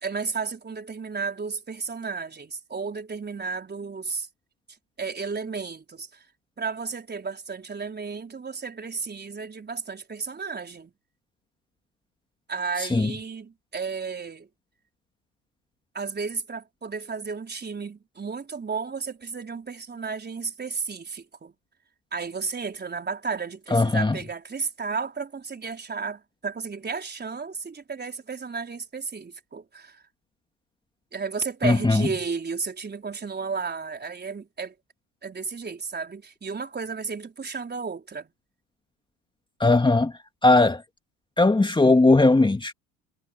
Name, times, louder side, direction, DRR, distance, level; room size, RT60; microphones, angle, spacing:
voice 1, 0.0-4.3 5.0-6.2 6.6-10.9 12.5-14.5 15.9-21.5 22.1-30.0 31.1-34.7 35.2-38.3, right 5 dB, 25° right, 4.3 m, -33 dB
voice 2, 12.8-13.1 23.7-24.2 31.6-32.1 39.6-40.1 40.4-40.8 41.4-42.7, left 2 dB, 10° left, 2.3 m, -19 dB
hypercardioid pair, 70°, 40 cm